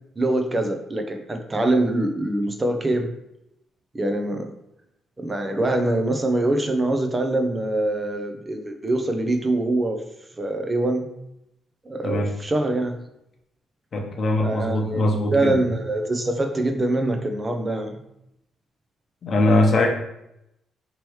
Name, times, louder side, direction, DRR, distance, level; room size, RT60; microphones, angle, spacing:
voice 1, 0.2-3.1 3.9-4.5 5.2-10.0 10.4-11.0 11.9-13.0 14.4-15.0 15.3-18.0, right 2 dB, 20° right, 5 dB, 0.6 m, -24 dB
voice 2, 13.9-15.6 19.2-19.9, left 1 dB, 50° left, 1 dB, 0.9 m, -21 dB
3.1 x 3.0 x 4.6 m, 0.82 s
cardioid pair, 90°, 0 cm